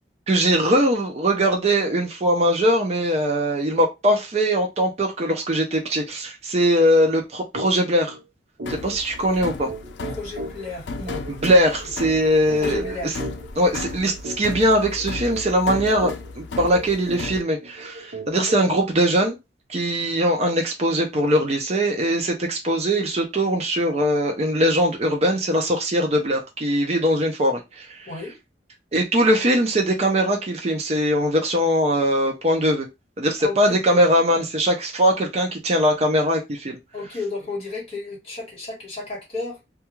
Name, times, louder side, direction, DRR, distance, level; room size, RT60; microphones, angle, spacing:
voice 1, 0.3-8.2 8.7-9.7 11.4-12.8 13.6-19.4 19.7-28.1 28.9-32.9 33.2-36.8, equal, 35° right, 0.5 m, -21 dB
sound 1, 7.5-7.7 8.1-8.2 8.6-18.8, right 1 dB, 65° right, 1.0 m, -37 dB
sound 2, 8.6-17.4, left 3 dB, 80° left, 0.4 m, -35 dB
voice 2, 10.0-11.2 12.6-13.1 28.1-28.4 33.4-34.0 36.9-39.6, left 3 dB, 35° left, 1.3 m, -32 dB
2.3 x 2.3 x 3.0 m
head